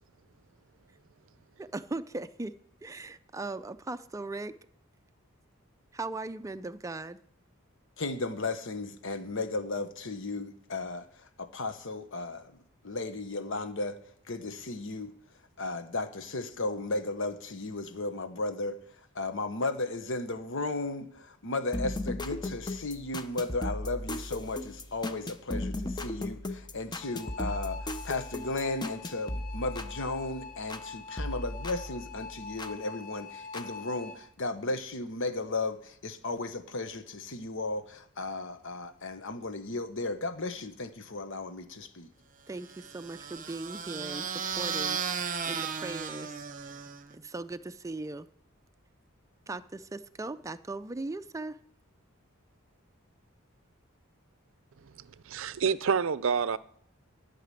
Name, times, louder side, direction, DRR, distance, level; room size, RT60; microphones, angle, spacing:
voice 1, 1.6-2.5 2.8-4.5 5.9-7.2 42.5-46.5 47.1-48.3 49.5-51.6, right 2 dB, 15° right, 10 dB, 0.4 m, -39 dB
voice 2, 8.0-12.6 12.8-14.0 14.3-15.1 15.6-18.8 19.1-42.1, left 2 dB, 65° left, 9 dB, 1.1 m, -35 dB
sound 1, 21.7-30.9 31.2-32.8 33.5-33.6, left 1 dB, 20° left, 0.8 m, -37 dB
sound 2, 27.0-34.2, left 5 dB, 45° left, 1.0 m, -45 dB
sound 3, 42.6-47.1, right 6 dB, 40° right, 0.8 m, -35 dB
voice 3, 55.0-56.6, right 6 dB, 65° right, 17 dB, 0.5 m, -28 dB
11.5 x 5.9 x 9.2 m, 0.68 s
head